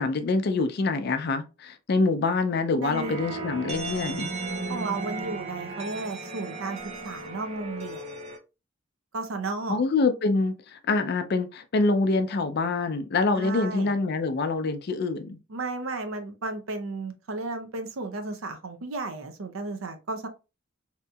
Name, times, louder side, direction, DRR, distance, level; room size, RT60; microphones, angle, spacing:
voice 1, 0.0-4.3 9.7-15.4, left 3 dB, 50° left, 0.4 m, -25 dB
voice 2, 2.7-3.2 4.7-6.8 7.0-8.2 9.1-9.8 13.3-13.9 15.5-20.3, right 3 dB, 80° right, 0.6 m, -33 dB
sound 1, 2.9-8.4, right 3 dB, 30° right, 0.5 m, -35 dB
2.8 x 2.6 x 2.3 m
head